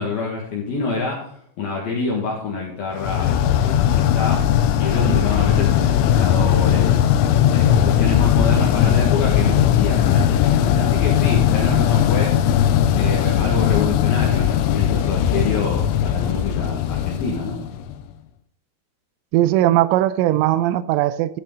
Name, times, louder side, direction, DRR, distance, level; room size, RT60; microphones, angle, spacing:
voice 1, 0.0-3.5 3.8-7.0 7.5-12.4 12.9-17.7, left 4 dB, 60° left, 3.2 m, -26 dB
sound 1, 3.0-18.0, left 10 dB, 80° left, 3.1 m, -18 dB
voice 2, 19.3-21.4, right 14 dB, 90° right, 3.1 m, -18 dB
14.0 x 6.6 x 3.9 m
omnidirectional pair, 5.6 m